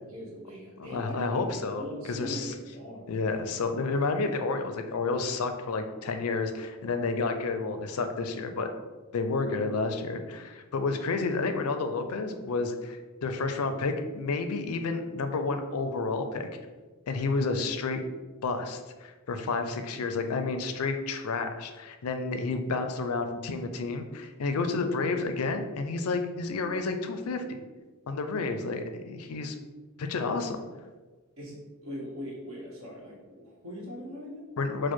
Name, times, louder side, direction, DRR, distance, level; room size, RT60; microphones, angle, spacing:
voice 1, 0.1-3.1 31.4-34.5, equal, 70° right, -3 dB, 1.2 m, -41 dB
voice 2, 0.8-2.5 3.1-8.7 9.1-16.5 17.1-18.0 18.4-27.4 28.1-29.6 30.0-30.6 34.6-34.9, left 3 dB, 85° left, 7 dB, 0.5 m, -30 dB
4.6 x 2.1 x 4.4 m, 1.3 s
head